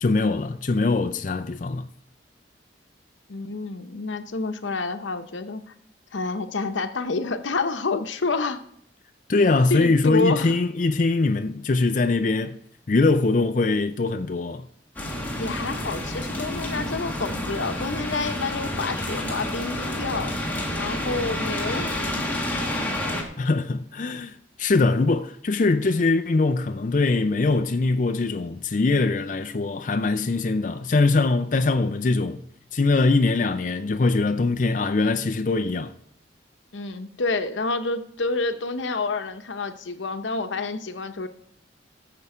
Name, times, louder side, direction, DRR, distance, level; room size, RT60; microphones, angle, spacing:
voice 1, 0.0-1.9 9.3-12.6 12.9-14.7 23.4-32.4 32.7-35.9, left 3 dB, 45° left, 0.4 m, -22 dB
voice 2, 3.3-5.6 6.1-8.6 9.7-10.5 15.4-20.3 20.7-22.0 36.7-41.3, left 3 dB, 90° left, 0.8 m, -28 dB
sound 1, 15.0-23.2, left 1 dB, 10° left, 1.6 m, -29 dB
15.5 x 6.9 x 4.9 m
head